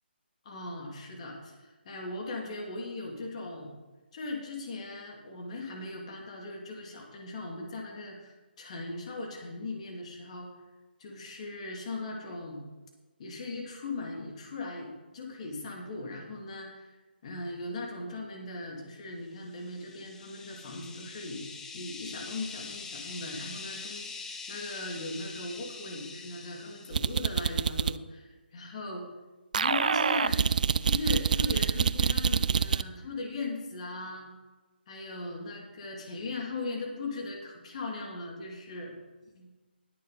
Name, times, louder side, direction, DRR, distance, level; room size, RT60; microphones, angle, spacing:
voice 1, 0.4-3.8 4.1-10.5 11.0-12.6 13.2-16.9 17.2-21.4 21.7-29.0 29.5-30.4 30.8-34.3 34.9-39.0 39.4-39.5, left 2 dB, 35° left, 0 dB, 2.7 m, -39 dB
sound 1, 19.6-27.4, left 4 dB, 5° left, 0.7 m, -44 dB
sound 2, 26.9-28.0 29.5-32.8, right 6 dB, 45° right, 0.4 m, -26 dB
20.0 x 6.8 x 4.0 m, 1.2 s
figure-of-eight pair, 150°, 6 cm